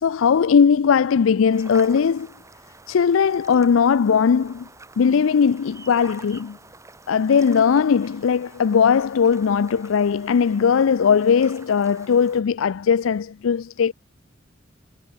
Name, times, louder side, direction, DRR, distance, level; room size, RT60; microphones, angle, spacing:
voice 1, 0.0-2.3 2.9-4.7 5.0-6.6 7.1-13.9, left 6 dB, 90° left, 0.4 m, -19 dB
sound 1, 1.5-12.4, right 3 dB, 15° right, 2.7 m, -47 dB
head